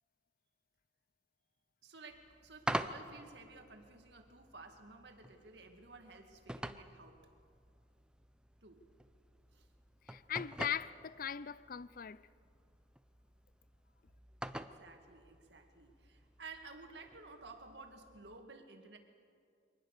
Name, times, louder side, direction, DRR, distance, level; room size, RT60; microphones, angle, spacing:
voice 1, 1.8-7.2 8.6-8.8 9.5-9.7 14.5-19.0, right 3 dB, 65° right, 2.3 m, -54 dB
sound 1, 2.1-18.4, right 1 dB, 5° right, 0.6 m, -47 dB
voice 2, 10.1-12.2, left 9 dB, 50° left, 0.5 m, -39 dB
24.0 x 19.5 x 6.7 m
head